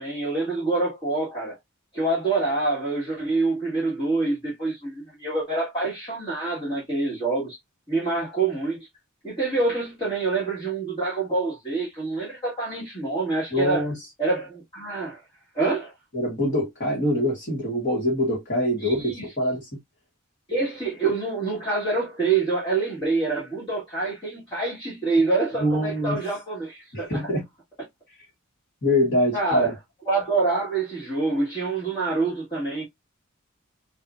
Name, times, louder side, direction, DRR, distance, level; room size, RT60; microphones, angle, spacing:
voice 1, 0.0-1.6 1.9-7.6 7.9-8.9 9.2-13.9 14.2-15.2 15.5-15.9 18.8-19.2 20.5-27.3 29.3-29.8 30.1-32.8, right 3 dB, 20° left, 1.8 m, -26 dB
voice 2, 13.5-14.0 16.1-19.7 25.6-26.2 26.9-27.4 28.8-29.7, left 1 dB, 40° left, 1.4 m, -24 dB
5.5 x 2.5 x 2.5 m
head